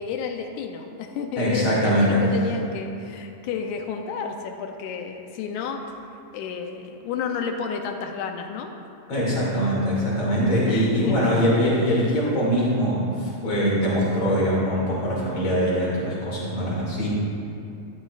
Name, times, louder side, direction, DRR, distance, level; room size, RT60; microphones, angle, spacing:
voice 1, 0.0-6.0 6.3-8.7 10.7-11.3 12.0-12.1, left 6 dB, 80° left, 4 dB, 2.1 m, -31 dB
voice 2, 1.4-2.2 9.1-17.1, equal, 40° left, -6 dB, 3.0 m, -22 dB
12.0 x 11.5 x 2.4 m, 2.8 s
omnidirectional pair, 3.6 m